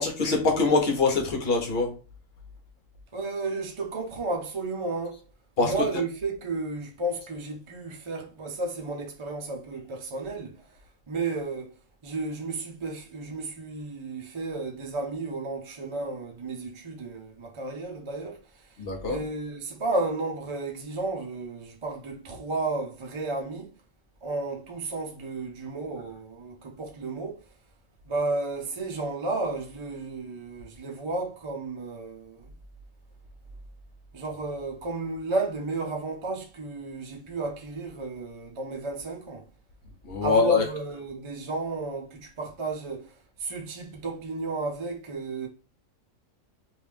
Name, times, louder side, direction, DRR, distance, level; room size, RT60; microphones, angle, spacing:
voice 1, 0.0-1.9 5.6-5.7 18.8-19.2 40.1-40.6, left 3 dB, 50° left, 1.1 m, -23 dB
voice 2, 3.1-5.2 5.6-10.6 11.1-11.8 12.0-23.7 24.2-27.4 28.1-32.5 34.1-39.5 40.2-45.5, right 2 dB, 35° right, 0.5 m, -33 dB
3.1 x 2.6 x 3.4 m
omnidirectional pair, 1.4 m